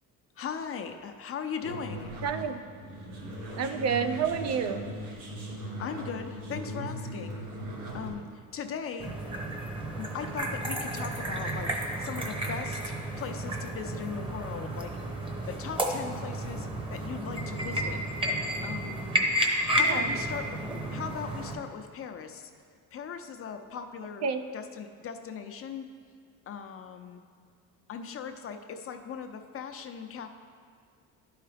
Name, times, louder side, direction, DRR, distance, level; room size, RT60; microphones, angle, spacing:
voice 1, 0.4-2.1 5.6-7.4 7.9-9.4 10.0-14.9 15.5-18.0 18.6-19.3 19.7-20.6 20.9-22.5 22.9-24.2 24.5-25.9 26.5-27.2 27.9-30.3, left 7 dB, 40° left, 6 dB, 0.6 m, -39 dB
sound 1, 1.6-8.1, right 1 dB, 75° right, 1.8 m, -39 dB
voice 2, 2.2-2.6 3.6-4.9 19.8-20.2 24.2-24.4, right 6 dB, 50° right, 8 dB, 0.5 m, -29 dB
sound 2, 9.0-21.5, right 1 dB, 15° right, 1.0 m, -32 dB
11.0 x 4.7 x 3.4 m, 2.2 s
cardioid pair, 100°, 33 cm